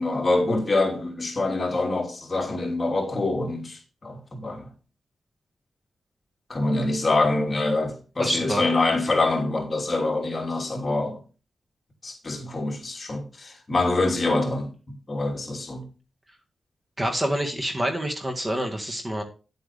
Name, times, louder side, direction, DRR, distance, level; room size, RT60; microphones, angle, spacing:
voice 1, 0.0-4.7 6.5-11.2 12.0-14.7 15.1-15.9, left 2 dB, 30° left, 3.0 m, -25 dB
voice 2, 8.2-8.6 17.0-19.2, equal, 20° right, 1.8 m, -27 dB
10.5 x 8.0 x 3.5 m
wide cardioid pair, 135°, 0 cm